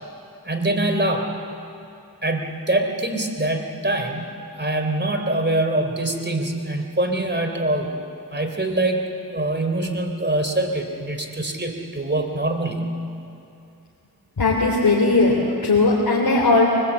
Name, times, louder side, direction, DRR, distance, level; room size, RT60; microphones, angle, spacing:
voice 1, 0.4-1.3 2.2-7.9 8.3-12.9, right 1 dB, 30° right, 4 dB, 3.5 m, -24 dB
voice 2, 14.4-16.7, left 3 dB, 65° left, -3 dB, 3.4 m, -18 dB
24.0 x 20.5 x 8.3 m, 2.7 s
cardioid pair, 50°, 38 cm